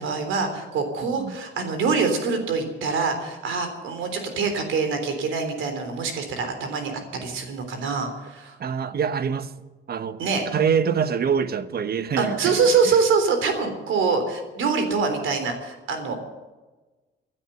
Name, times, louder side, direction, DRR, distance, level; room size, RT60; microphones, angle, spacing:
voice 1, 0.0-8.6 10.2-10.5 12.2-16.1, right 5 dB, 80° right, 3.5 m, -24 dB
voice 2, 1.0-1.3 8.6-9.5 9.9-10.2 10.5-12.6, right 7 dB, 50° right, 1.2 m, -25 dB
15.5 x 10.0 x 9.0 m
cardioid pair, 90°, 20 cm